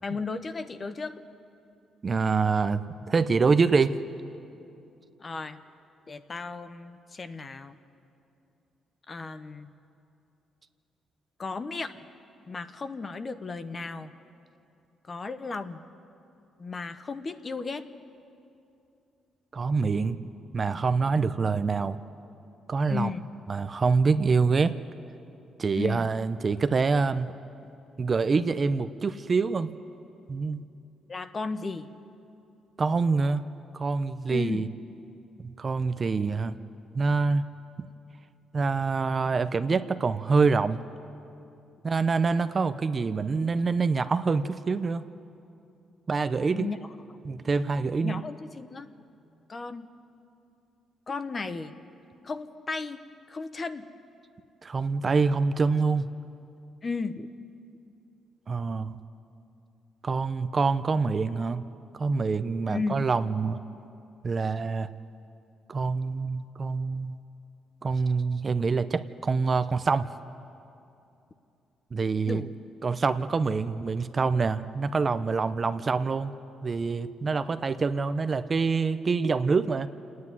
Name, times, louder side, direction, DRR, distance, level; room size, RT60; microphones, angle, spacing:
voice 1, 0.0-1.2 5.2-5.6 6.1-7.8 9.1-9.7 11.4-12.0 12.5-14.1 15.0-15.8 16.6-17.9 22.9-23.3 25.8-26.1 30.6-30.7 31.1-31.9 34.3-34.7 46.5-47.2 48.0-48.9 49.5-49.9 51.1-51.7 52.2-53.0 53.3-53.9 56.8-57.3 62.7-63.0 72.3-72.6, left 4 dB, 35° left, 11 dB, 0.9 m, -34 dB
voice 2, 2.0-4.0 19.5-20.3 20.5-22.0 22.7-23.1 23.5-24.7 25.6-27.3 28.0-29.7 30.3-30.6 32.8-33.4 33.7-34.7 35.4-36.5 36.9-37.4 38.5-40.8 41.8-45.0 46.1-46.7 47.3-48.2 54.6-56.1 58.5-59.0 60.0-61.6 62.0-63.6 64.2-64.9 65.7-67.2 67.8-70.1 71.9-72.4 72.8-76.3 76.6-79.9, right 4 dB, 35° right, 11 dB, 0.6 m, -26 dB
27.5 x 9.6 x 9.8 m, 2.7 s
cardioid pair, 90°, 0 cm